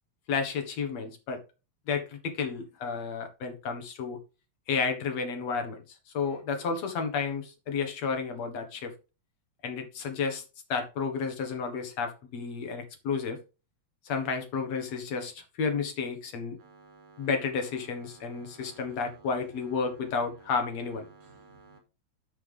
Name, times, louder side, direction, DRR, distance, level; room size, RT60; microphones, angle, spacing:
voice 1, 0.3-1.4 1.9-4.2 4.7-5.8 6.1-8.9 9.6-10.4 10.7-13.4 14.0-16.6 17.2-21.1, left 5 dB, 55° left, 2.4 m, -31 dB
voice 2, 16.6-17.3 18.1-19.3 21.1-21.8, right 3 dB, 70° right, 4.5 m, -55 dB
12.0 x 5.7 x 3.5 m
omnidirectional pair, 4.0 m